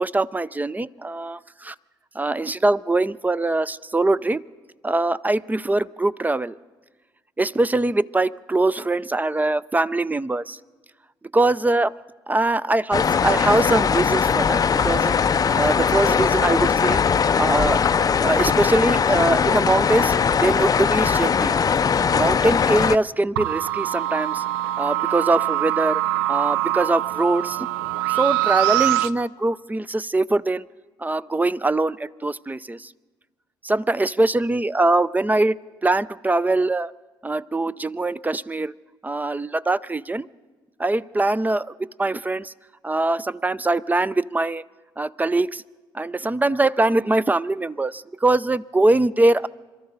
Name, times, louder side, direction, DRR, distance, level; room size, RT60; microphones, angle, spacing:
voice 1, 0.0-1.7 2.2-4.4 4.8-6.6 7.4-10.6 11.3-11.9 12.3-15.1 15.6-17.0 17.4-17.8 18.2-21.6 22.1-24.4 24.8-26.0 26.3-27.7 28.2-30.6 31.0-32.9 33.6-35.5 35.8-36.9 37.2-38.7 39.0-40.3 40.8-41.7 42.0-42.5 42.8-44.6 45.0-45.6 45.9-49.5, right 2 dB, 15° right, 18 dB, 0.5 m, -22 dB
sound 1, 12.9-23.0, left 6 dB, 35° left, 0.5 m, -20 dB
sound 2, 23.4-29.1, right 14 dB, 75° right, 0.4 m, -23 dB
27.0 x 13.0 x 4.0 m, 1.3 s
hypercardioid pair, 50°, 11 cm